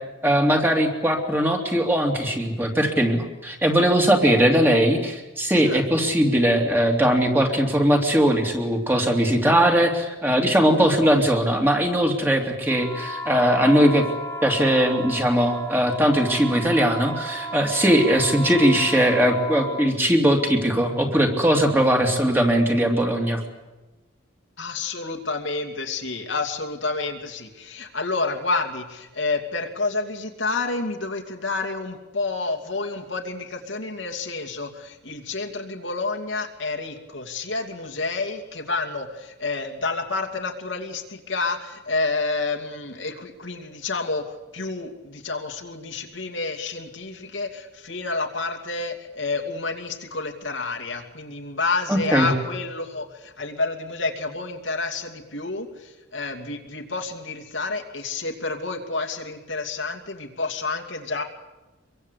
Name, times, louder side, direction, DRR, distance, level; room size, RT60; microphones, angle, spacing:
voice 1, 0.2-14.0 14.4-23.4 51.9-52.3, equal, 10° right, 2 dB, 2.9 m, -20 dB
voice 2, 5.5-6.1 24.6-61.2, left 3 dB, 70° left, 3 dB, 2.7 m, -29 dB
sound 1, 12.7-19.9, equal, 15° left, 2.6 m, -34 dB
25.0 x 23.0 x 8.4 m, 1.1 s
head